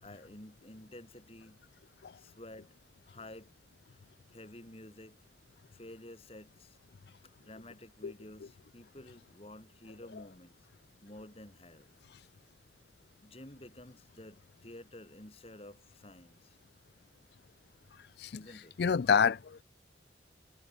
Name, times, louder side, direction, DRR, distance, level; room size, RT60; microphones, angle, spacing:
voice 1, 0.0-1.6 2.1-2.8 3.0-3.5 3.9-4.0 4.3-5.2 5.7-6.8 7.4-10.6 11.0-11.9 13.2-16.6 18.3-18.8, left 1 dB, 35° left, 3.2 m, -51 dB
voice 2, 18.8-19.6, left 6 dB, 65° left, 0.4 m, -27 dB
head